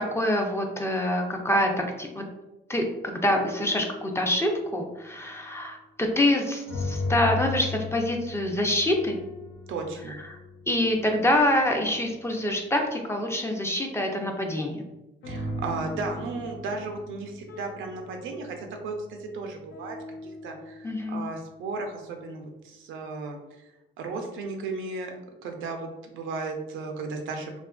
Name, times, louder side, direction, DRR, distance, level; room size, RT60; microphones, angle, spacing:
voice 1, 0.0-1.7 2.0-2.2 2.7-9.2 10.1-10.4 10.7-14.8 20.8-21.3, left 1 dB, 15° left, 2 dB, 0.4 m, -26 dB
sound 1, 3.4-4.1 6.7-12.5 15.2-20.9, left 2 dB, 65° left, 0.6 m, -37 dB
voice 2, 9.7-10.2 15.2-20.0 20.2-23.4 24.0-25.1 25.4-25.9 26.1-27.6, right 3 dB, 80° right, 3 dB, 0.5 m, -35 dB
2.7 x 2.4 x 2.3 m, 1.0 s
cardioid pair, 90°, 20 cm